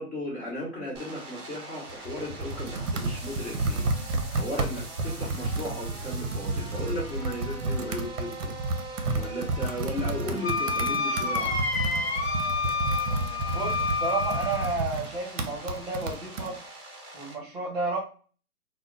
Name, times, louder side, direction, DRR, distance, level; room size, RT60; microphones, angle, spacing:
voice 1, 0.0-8.5 9.1-11.5, left 1 dB, 20° left, -7 dB, 1.1 m, -36 dB
sound 1, 0.9-17.3, right 2 dB, 20° right, 0.6 m, -43 dB
Computer keyboard, 1.9-16.5, right 2 dB, 55° right, 0.6 m, -31 dB
Wind instrument woodwind instrument, 10.4-14.8, left 3 dB, 45° left, 0.6 m, -29 dB
voice 2, 13.5-16.6 17.1-18.0, right 3 dB, 35° right, -1 dB, 1.0 m, -32 dB
2.6 x 2.1 x 3.7 m, 0.38 s
hypercardioid pair, 155°, 45 cm